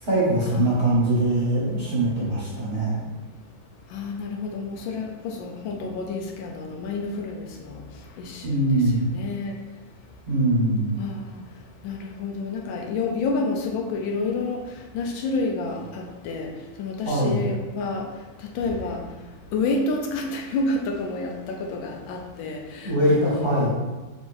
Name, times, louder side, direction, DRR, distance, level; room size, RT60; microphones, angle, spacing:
voice 1, 0.0-3.0 8.4-9.0 10.3-11.0 17.0-17.4 22.8-23.7, right 1 dB, 35° right, -8 dB, 1.1 m, -22 dB
voice 2, 3.9-7.4 8.2-8.4 9.1-9.5 11.0-11.2 11.8-14.6 14.9-15.8 16.2-16.5 16.8-18.0 18.6-19.0 19.5-21.4 21.7-22.6 23.0-23.6, left 3 dB, 80° left, 1 dB, 1.3 m, -28 dB
5.1 x 3.5 x 2.6 m, 1.2 s
omnidirectional pair, 2.2 m